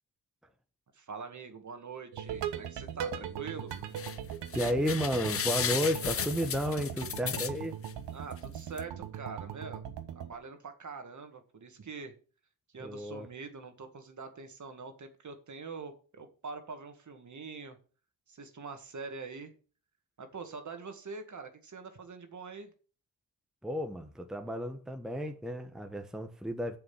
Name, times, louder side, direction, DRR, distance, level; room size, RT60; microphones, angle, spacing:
voice 1, 0.9-3.7 8.1-9.8 10.2-12.1 12.7-17.8 18.3-19.5 20.2-22.7, right 4 dB, 45° right, 1.9 m, -44 dB
sound 1, 2.1-10.3, right 9 dB, 85° right, 1.2 m, -40 dB
sound 2, 3.7-4.2 4.5-7.9 8.4-8.5 8.8-8.9, left 7 dB, 35° left, 0.6 m, -34 dB
voice 2, 4.5-7.8 12.8-13.3 23.6-26.8, equal, ahead, 1.1 m, -32 dB
6.9 x 6.9 x 7.1 m
cardioid pair, 85°, 41 cm